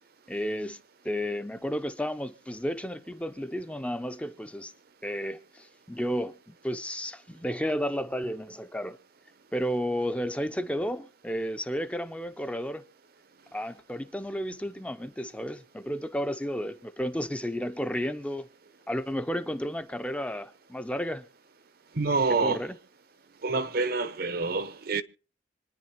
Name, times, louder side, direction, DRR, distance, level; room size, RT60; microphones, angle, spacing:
voice 1, 0.3-0.8 1.0-4.7 5.0-9.0 9.5-12.8 13.5-18.5 18.9-21.3 22.4-22.8, equal, 5° left, 0.6 m, -32 dB
voice 2, 21.9-22.6 23.4-25.0, right 3 dB, 55° right, 0.8 m, -27 dB
26.0 x 10.0 x 3.0 m
head